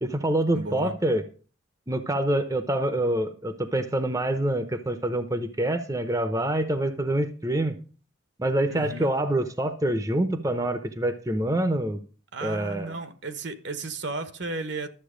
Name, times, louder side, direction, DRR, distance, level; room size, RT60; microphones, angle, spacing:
voice 1, 0.0-1.2 1.9-7.7 8.4-12.0 12.4-12.9, right 1 dB, 15° right, 0.7 m, -26 dB
voice 2, 0.5-1.0 8.7-9.1 12.3-14.9, right 2 dB, 65° right, 1.1 m, -34 dB
12.5 x 7.6 x 5.0 m
head